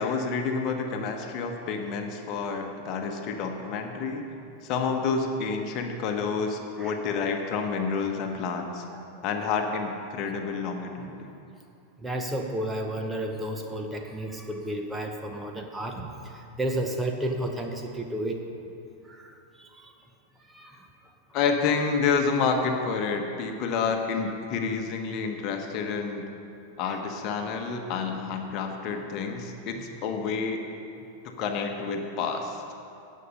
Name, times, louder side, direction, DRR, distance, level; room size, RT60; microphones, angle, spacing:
voice 1, 0.0-4.2 4.6-8.8 9.2-11.3 21.3-26.2 26.8-30.6 31.2-32.6, left 5 dB, 40° left, 4 dB, 1.2 m, -29 dB
voice 2, 12.0-18.4 19.1-20.0 20.5-20.9 26.8-27.0 32.3-32.4, right 1 dB, 10° right, 3 dB, 1.0 m, -32 dB
18.0 x 6.5 x 5.5 m, 2.6 s
figure-of-eight pair, 90°, 0 cm